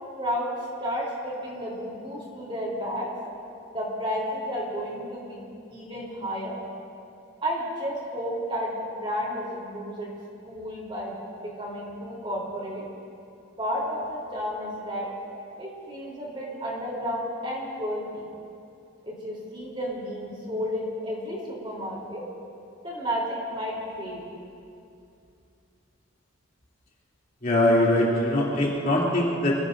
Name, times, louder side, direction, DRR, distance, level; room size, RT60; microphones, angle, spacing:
voice 1, 0.2-0.5 0.8-3.1 3.7-5.4 5.7-6.6 7.4-10.1 10.4-12.8 13.6-15.1 15.6-18.2 19.0-22.2 22.8-24.2, equal, 25° right, -4 dB, 3.6 m, -32 dB
voice 2, 27.4-29.5, left 1 dB, 40° left, -6 dB, 3.2 m, -22 dB
26.5 x 17.5 x 2.7 m, 2.6 s
head